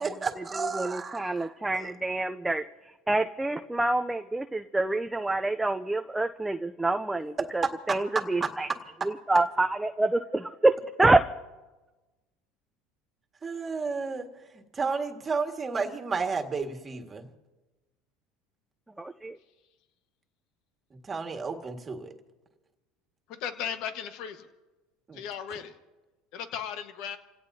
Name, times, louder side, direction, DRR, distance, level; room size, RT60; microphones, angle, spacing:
voice 1, 0.0-1.9 7.4-9.1 13.4-14.3 14.5-17.3 21.0-22.1 25.1-25.2, right 4 dB, 25° right, 3 dB, 1.8 m, -32 dB
voice 2, 0.5-2.6 3.1-8.7 9.3-10.7 11.0-11.2 19.0-19.4, right 2 dB, 10° right, 6 dB, 0.5 m, -26 dB
voice 3, 23.3-24.5 25.1-25.7 26.3-27.2, left 8 dB, 65° left, 8 dB, 1.3 m, -36 dB
29.0 x 17.0 x 2.8 m, 1.2 s
supercardioid pair, 110°, 0 cm